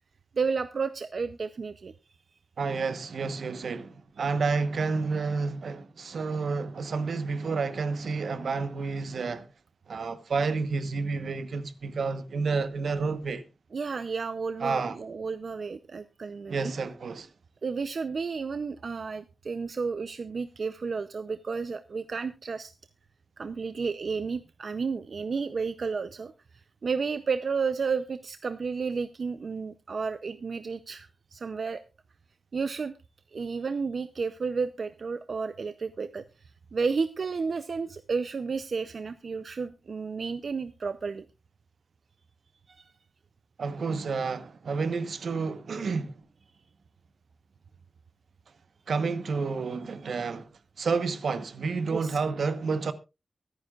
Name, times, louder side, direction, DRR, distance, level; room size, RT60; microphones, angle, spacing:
voice 1, 0.3-1.9 13.7-16.7 17.6-22.7 23.4-31.8 32.5-32.9 33.3-41.2 42.7-42.9 51.9-52.2, right 5 dB, 55° right, 0.6 m, -32 dB
voice 2, 2.6-9.5 9.9-13.4 14.6-15.0 16.5-17.3 43.6-46.2 48.9-50.5 50.8-52.9, right 4 dB, 70° right, 1.1 m, -30 dB
23.5 x 9.7 x 2.4 m
wide cardioid pair, 170°, 0 cm